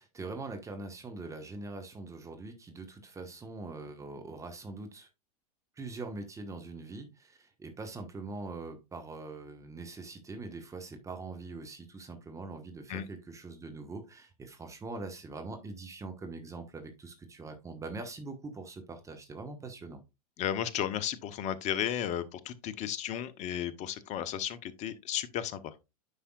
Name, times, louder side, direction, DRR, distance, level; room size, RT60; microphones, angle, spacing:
voice 1, 0.0-5.1 5.8-20.0, right 3 dB, 15° right, 1.3 m, -43 dB
voice 2, 20.4-25.7, left 10 dB, 35° left, 0.9 m, -34 dB
9.8 x 5.6 x 2.4 m
hypercardioid pair, 100°, 20 cm